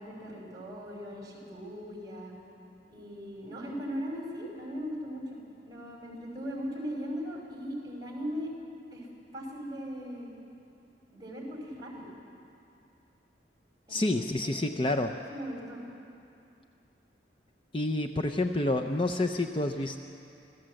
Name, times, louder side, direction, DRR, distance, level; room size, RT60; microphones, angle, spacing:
voice 1, 0.0-2.3 2.9-5.4 5.6-8.5 8.9-9.1 9.3-10.3 11.1-12.1 13.9-15.0 15.3-15.8, equal, 20° right, -2 dB, 5.0 m, -39 dB
voice 2, 13.9-15.1 17.7-20.0, left 2 dB, 30° left, 6 dB, 0.6 m, -28 dB
26.0 x 16.0 x 7.7 m, 2.7 s
head